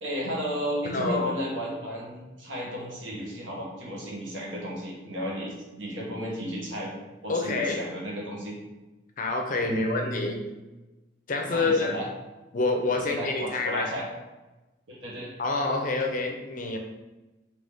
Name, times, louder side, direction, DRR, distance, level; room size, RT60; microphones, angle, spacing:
voice 1, 0.0-6.9 7.2-8.6 9.6-10.2 11.5-12.0 12.9-14.1 14.9-15.3, equal, 75° right, -4 dB, 1.3 m, -34 dB
voice 2, 0.9-1.3 7.3-7.8 9.2-10.4 11.3-11.9 12.5-13.9 15.4-16.8, left 3 dB, 45° left, 3 dB, 0.5 m, -27 dB
4.0 x 2.8 x 3.5 m, 1.1 s
head